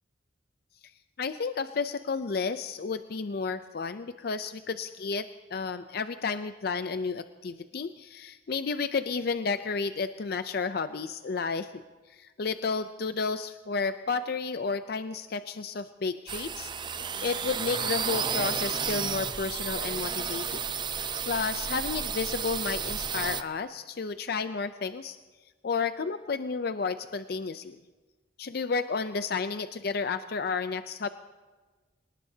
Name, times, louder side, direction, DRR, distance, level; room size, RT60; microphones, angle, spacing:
voice 1, 1.2-11.8 12.1-16.7 17.2-20.6 21.0-25.2 25.6-27.8 28.4-31.1, left 5 dB, 55° left, 11 dB, 0.5 m, -32 dB
sound 1, 16.3-23.4, right 6 dB, 25° right, 0.5 m, -32 dB
26.5 x 19.0 x 2.8 m, 1.3 s
head